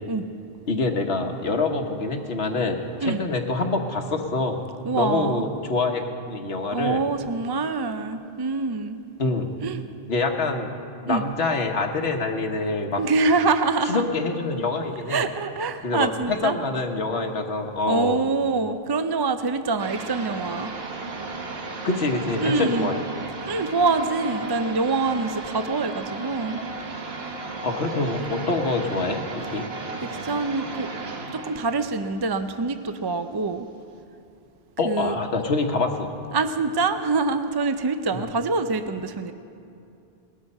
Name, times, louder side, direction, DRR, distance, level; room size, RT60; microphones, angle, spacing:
voice 1, 0.7-4.6 4.9-6.0 6.3-7.0 9.2-9.5 10.1-10.7 11.0-13.0 13.8-15.3 15.8-18.2 21.8-23.0 27.6-29.6 34.8-36.1 38.1-38.2, left 3 dB, 80° left, 3 dB, 1.4 m, -25 dB
voice 2, 4.8-5.4 6.7-9.0 9.6-9.8 11.1-11.3 13.0-14.0 15.1-16.6 17.9-20.7 22.4-22.9 23.5-26.6 30.0-30.9 31.3-33.7 34.8-35.1 36.3-39.3, right 3 dB, 35° right, 9 dB, 0.4 m, -25 dB
sound 1, 19.8-33.2, right 3 dB, 75° right, 1.5 m, -35 dB
19.5 x 12.5 x 5.5 m, 2.6 s
omnidirectional pair, 1.0 m